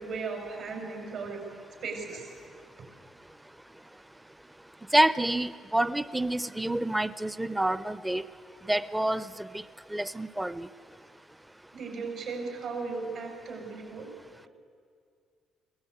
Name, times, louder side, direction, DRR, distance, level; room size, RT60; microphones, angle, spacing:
voice 1, 0.0-1.4 1.8-2.3 11.7-14.1, right 4 dB, 75° right, 2 dB, 5.3 m, -36 dB
voice 2, 4.9-8.2 8.7-9.5 9.9-10.7, right 1 dB, 10° right, 15 dB, 0.5 m, -27 dB
21.5 x 18.0 x 8.0 m, 2.2 s
cardioid pair, 100°, 0 cm